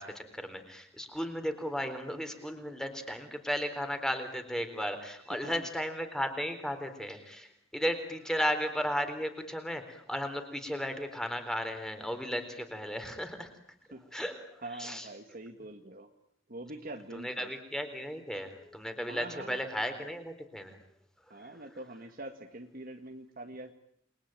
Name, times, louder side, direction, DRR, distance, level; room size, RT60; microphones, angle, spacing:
voice 1, 0.0-13.5 14.1-15.1 17.1-20.8 21.3-21.5, equal, 5° left, 7 dB, 3.9 m, -35 dB
voice 2, 5.2-5.7 13.9-14.1 14.6-16.1 16.5-17.5 19.0-19.7 21.3-23.7, right 2 dB, 45° right, 5 dB, 2.0 m, -44 dB
29.5 x 22.5 x 9.0 m, 0.70 s
head